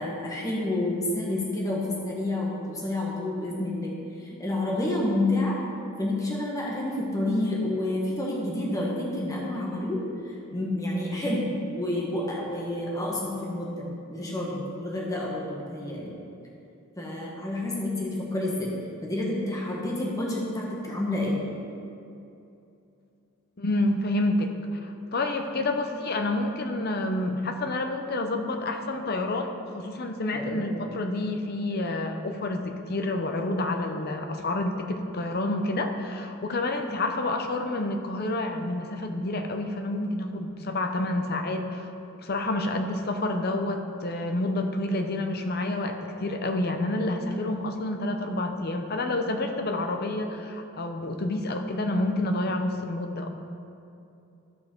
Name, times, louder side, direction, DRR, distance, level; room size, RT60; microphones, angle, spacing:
voice 1, 0.0-5.6 6.0-10.0 10.5-16.1 17.0-18.7 19.0-21.4 30.3-30.7, left 1 dB, 15° left, -4 dB, 1.3 m, -29 dB
voice 2, 23.6-41.9 42.2-53.3, left 2 dB, 45° left, 5 dB, 0.7 m, -29 dB
13.5 x 5.4 x 4.5 m, 2.7 s
head